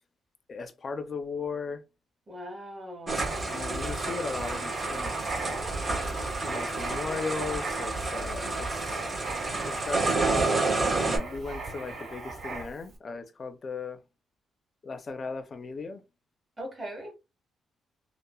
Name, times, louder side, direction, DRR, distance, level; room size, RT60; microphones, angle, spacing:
voice 1, 0.5-1.8 3.5-5.6 6.4-9.0 9.7-14.0 14.8-16.0, left 4 dB, 35° left, 0.4 m, -37 dB
voice 2, 2.3-3.5 16.6-17.1, equal, 20° right, 1.3 m, -40 dB
sound 1, 3.1-11.2, right 3 dB, 40° right, 1.1 m, -30 dB
Writing, 3.1-12.9, right 3 dB, 55° right, 1.6 m, -37 dB
3.0 x 2.0 x 2.2 m
cardioid pair, 120°, 0 cm